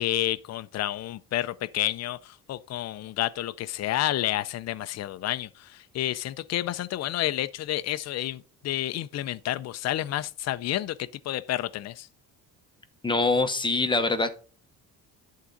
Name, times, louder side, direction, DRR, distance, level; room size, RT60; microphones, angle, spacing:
voice 1, 0.0-12.1, left 13 dB, 45° left, 0.5 m, -30 dB
voice 2, 13.0-14.3, left 3 dB, 15° left, 0.9 m, -24 dB
11.0 x 3.8 x 5.2 m
cardioid pair, 130°, 36 cm